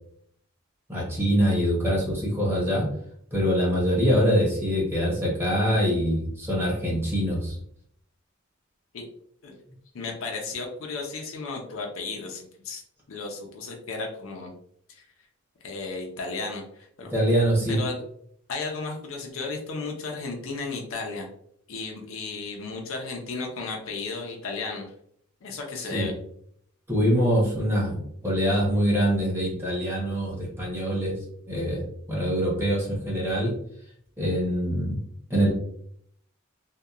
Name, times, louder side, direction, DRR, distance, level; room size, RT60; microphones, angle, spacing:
voice 1, 0.9-2.9 3.3-7.6 17.1-17.8 25.9-26.1 26.9-33.5 34.2-35.0 35.3-35.5, equal, 10° right, -4 dB, 0.8 m, -24 dB
voice 2, 9.9-12.8 13.1-14.5 14.9-15.0 15.6-17.1 17.7-18.0 18.5-21.3 21.7-24.9 25.4-26.1, left 3 dB, 65° left, 1 dB, 0.5 m, -34 dB
2.7 x 2.2 x 2.3 m, 0.69 s
head